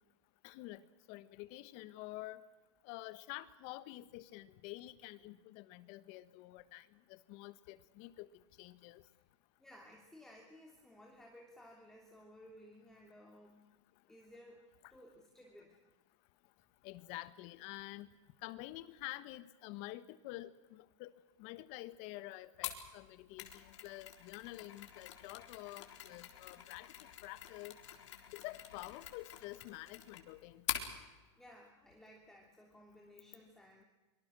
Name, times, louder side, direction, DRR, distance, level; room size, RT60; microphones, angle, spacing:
voice 1, 0.4-0.8 1.1-2.5 2.8-8.3 8.6-9.0 16.8-18.1 18.4-27.8 28.3-30.6, left 17 dB, 45° left, 15 dB, 1.4 m, -48 dB
voice 2, 9.6-13.7 14.1-14.6 14.9-15.8 31.4-33.8, left 1 dB, 5° left, 0 dB, 2.9 m, -58 dB
Mechanisms, 22.6-30.9, left 11 dB, 70° left, 4.0 m, -46 dB
25.5 x 24.5 x 6.3 m, 1.1 s
supercardioid pair, 140°, 15 cm